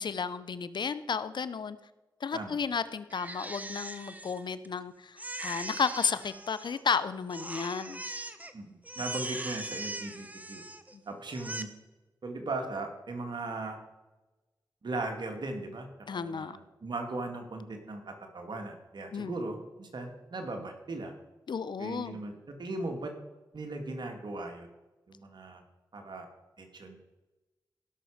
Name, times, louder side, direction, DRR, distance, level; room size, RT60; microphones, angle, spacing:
voice 1, 0.0-1.8 2.2-8.0 10.9-11.0 16.1-16.6 19.1-19.4 21.5-22.2, left 6 dB, 65° left, 15 dB, 0.7 m, -33 dB
Crying sobbing, 3.1-4.8 5.2-7.0 7.3-8.5 8.8-10.9 11.3-11.6, right 1 dB, 20° right, 1.2 m, -40 dB
voice 2, 8.5-10.6 11.1-11.7 12.2-13.8 14.8-21.1 21.8-23.1 23.5-24.7 25.1-25.6 25.9-26.3 26.6-27.0, right 2 dB, 65° right, 4 dB, 2.3 m, -38 dB
17.0 x 6.3 x 5.0 m, 1.1 s
cardioid pair, 40°, 8 cm